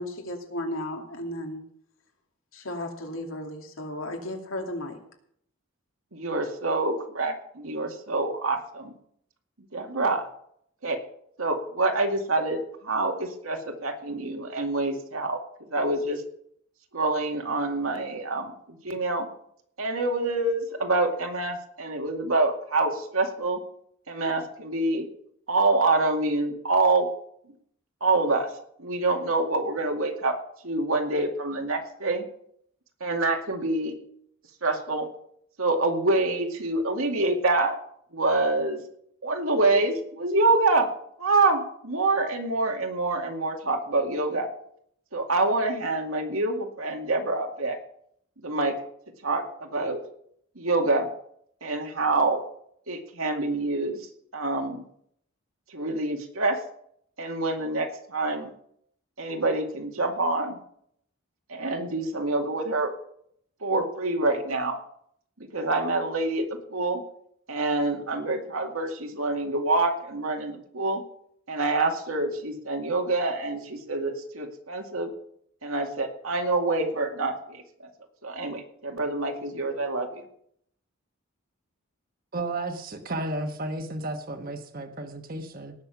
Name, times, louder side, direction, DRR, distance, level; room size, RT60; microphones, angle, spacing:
voice 1, 0.0-1.6 2.5-5.0, left 1 dB, 80° left, 2 dB, 2.5 m, -34 dB
voice 2, 6.1-8.9 9.7-10.3 10.8-11.0 11.4-15.4 15.7-16.2 16.9-19.3 19.8-23.6 24.1-25.1 25.5-27.1 28.0-28.5 28.8-30.3 30.6-32.2 33.0-33.9 34.6-35.1 35.6-37.7 38.1-38.8 39.2-40.9 41.2-44.5 45.1-47.8 48.4-48.8 49.2-50.0 50.6-51.1 51.6-52.4 52.9-54.8 55.7-56.6 57.2-58.5 59.2-60.6 61.5-62.9 63.6-64.8 65.5-67.0 67.5-71.0 71.5-75.1 75.6-77.6 78.2-80.2, right 2 dB, 90° right, 3 dB, 2.3 m, -26 dB
voice 3, 82.3-85.7, right 2 dB, 45° right, 6 dB, 1.3 m, -33 dB
18.5 x 6.7 x 6.0 m, 0.67 s
head